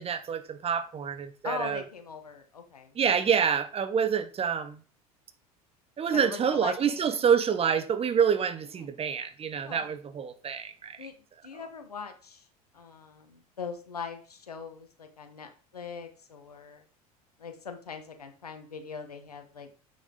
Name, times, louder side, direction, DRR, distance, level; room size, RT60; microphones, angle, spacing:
voice 1, 0.0-1.8 2.9-4.8 6.0-11.1, right 7 dB, 30° right, 1.1 m, -27 dB
voice 2, 1.4-2.9 6.1-7.3 8.8-8.9 9.5-9.9 11.0-11.1 11.4-12.5 12.7-16.8 17.4-19.7, left 6 dB, 90° left, 1.4 m, -41 dB
8.3 x 6.5 x 3.9 m
hypercardioid pair, 70°, 19 cm